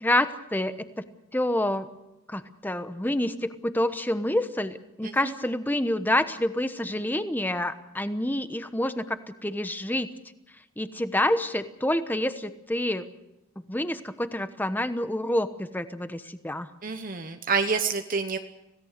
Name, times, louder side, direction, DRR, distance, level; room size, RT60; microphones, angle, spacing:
voice 1, 0.0-0.7 1.3-1.9 2.3-10.1 10.8-13.1 13.7-16.7, left 1 dB, 10° left, 10 dB, 1.0 m, -27 dB
voice 2, 16.8-18.4, right 5 dB, 40° right, 7 dB, 1.0 m, -28 dB
26.5 x 17.5 x 6.7 m, 0.94 s
head